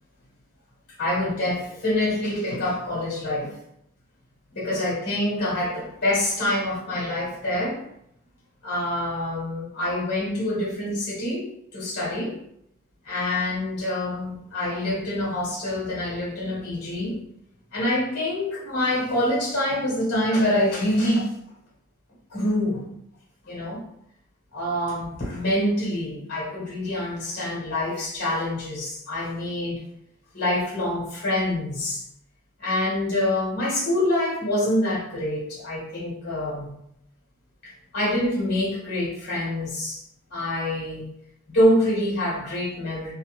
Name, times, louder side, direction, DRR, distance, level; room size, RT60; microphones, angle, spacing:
voice 1, 1.0-3.5 4.5-7.8 8.6-12.4 13.0-17.2 17.7-21.3 22.3-22.9 23.4-23.8 24.5-29.8 30.3-32.0 32.6-36.7 37.6-40.0 40.3-41.1 41.5-43.1, left 1 dB, 45° left, -5 dB, 1.1 m, -26 dB
2.5 x 2.4 x 3.1 m, 0.75 s
head